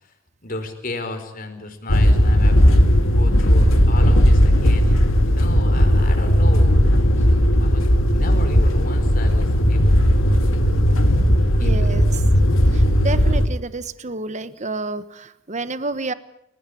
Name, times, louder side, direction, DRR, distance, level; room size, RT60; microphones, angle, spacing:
voice 1, 0.4-6.9 7.6-7.9 8.1-10.4 11.6-11.9, left 2 dB, 45° left, 6 dB, 4.7 m, -34 dB
sound 1, 1.9-13.5, equal, 80° left, 2.6 m, -16 dB
voice 2, 11.6-12.0 12.7-16.1, right 2 dB, 35° right, 13 dB, 1.3 m, -29 dB
29.5 x 16.5 x 8.6 m, 0.82 s
head